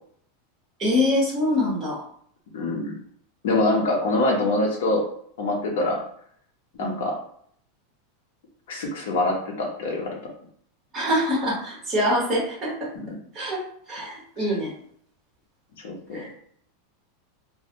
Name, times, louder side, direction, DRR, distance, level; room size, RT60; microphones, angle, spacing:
voice 1, 0.8-2.0 4.2-4.6 6.8-7.0 10.9-12.7 13.3-13.6 13.9-14.7 16.1-16.3, left 1 dB, 15° right, -5 dB, 1.1 m, -25 dB
voice 2, 2.5-3.0 3.4-5.0 5.4-6.0 6.8-7.2 8.7-10.2 15.8-16.3, left 2 dB, 70° left, 0 dB, 0.7 m, -24 dB
2.5 x 2.1 x 2.8 m, 0.63 s
supercardioid pair, 170°, 0 cm